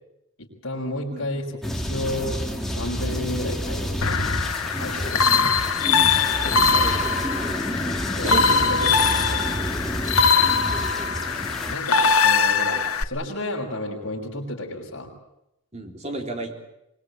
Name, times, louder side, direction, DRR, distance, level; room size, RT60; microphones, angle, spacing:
voice 1, 0.4-1.4 1.7-2.4 2.7-4.4 4.8-5.6 8.1-9.0 9.2-9.5 11.7-15.1, left 1 dB, 60° left, 0 dB, 6.3 m, -32 dB
sound 1, 1.6-11.8, equal, ahead, 2.6 m, -29 dB
sound 2, 4.0-13.0, left 5 dB, 90° left, 1.4 m, -22 dB
voice 2, 6.7-7.0 8.2-8.7 15.7-16.5, right 2 dB, 30° right, 3 dB, 3.6 m, -32 dB
24.5 x 22.5 x 8.5 m, 0.86 s
head